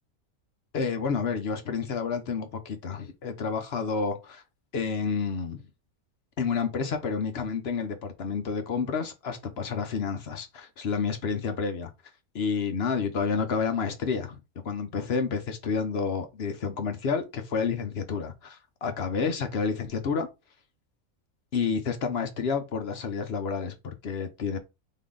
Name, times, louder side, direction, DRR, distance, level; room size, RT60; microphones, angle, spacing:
voice 1, 0.7-4.4 4.7-5.6 6.4-11.9 12.3-14.4 14.6-20.3 21.5-24.6, left 5 dB, 55° left, 0.9 m, -29 dB
3.8 x 3.7 x 3.8 m
omnidirectional pair, 1.5 m